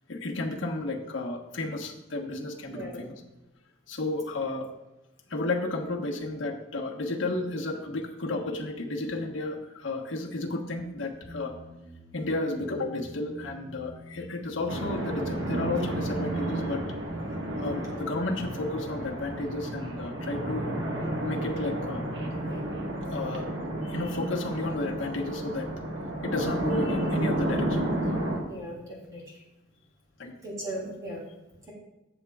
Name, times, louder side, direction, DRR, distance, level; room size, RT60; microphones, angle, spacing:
voice 1, 0.1-3.1 3.9-4.7 5.3-11.5 12.1-16.8 17.6-20.7 21.2-22.0 23.1-23.5 23.8-25.7 26.2-28.5 30.2-30.3, left 2 dB, 75° left, 0 dB, 1.1 m, -32 dB
voice 2, 2.7-3.0 28.4-29.2 30.4-31.2, right 1 dB, 20° right, -4 dB, 3.2 m, -37 dB
sound 1, 11.2-24.4, equal, 25° left, 2.2 m, -48 dB
sound 2, 14.7-28.4, right 1 dB, 60° right, 1.5 m, -31 dB
14.0 x 8.1 x 2.4 m, 0.97 s
head